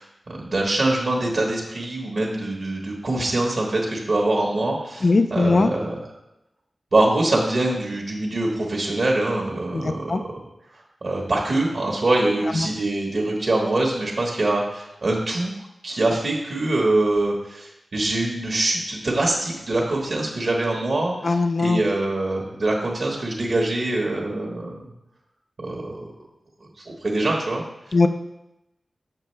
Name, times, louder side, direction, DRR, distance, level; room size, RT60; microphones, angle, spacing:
voice 1, 0.0-6.0 6.9-10.2 11.0-15.5 15.8-24.7 25.6-26.1 26.8-27.6, right 2 dB, 70° right, -2 dB, 1.3 m, -24 dB
voice 2, 5.0-5.7 9.7-10.2 21.2-21.8 27.9-28.1, left 3 dB, 60° left, 8 dB, 0.4 m, -19 dB
6.6 x 6.3 x 3.3 m, 0.89 s
cardioid pair, 55°, 0 cm